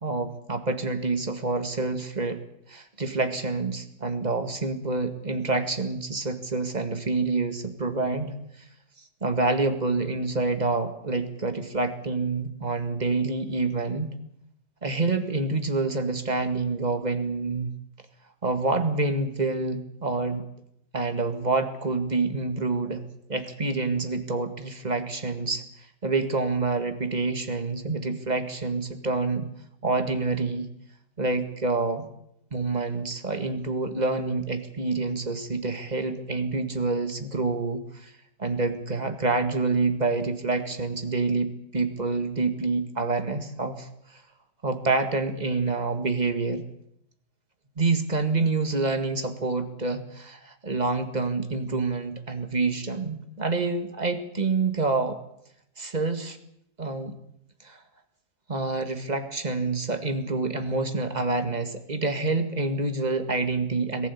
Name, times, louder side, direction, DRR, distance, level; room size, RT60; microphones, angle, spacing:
voice 1, 0.0-2.4 2.7-8.3 9.2-14.1 14.8-17.7 18.4-20.4 20.9-23.0 23.3-25.6 26.0-29.5 29.8-30.7 31.2-32.1 32.5-38.1 38.4-44.2 44.6-46.6 47.8-55.2 55.8-56.4 56.8-57.1 57.6-57.8 58.5-64.1, right 3 dB, 25° right, 7 dB, 1.9 m, -27 dB
22.0 x 15.5 x 8.5 m, 0.75 s
omnidirectional pair, 1.9 m